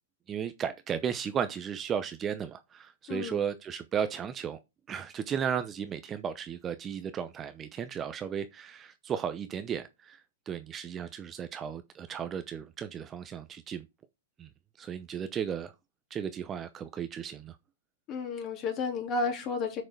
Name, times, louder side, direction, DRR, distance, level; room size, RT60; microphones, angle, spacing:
voice 1, 0.3-4.6 4.9-10.2 10.5-13.8 14.4-14.5 14.8-15.7 16.1-17.5, right 8 dB, 20° right, 0.8 m, -35 dB
voice 2, 3.1-3.4 18.1-19.8, left 4 dB, 35° left, 3.2 m, -32 dB
6.6 x 6.3 x 4.7 m
hypercardioid pair, 120°, 0 cm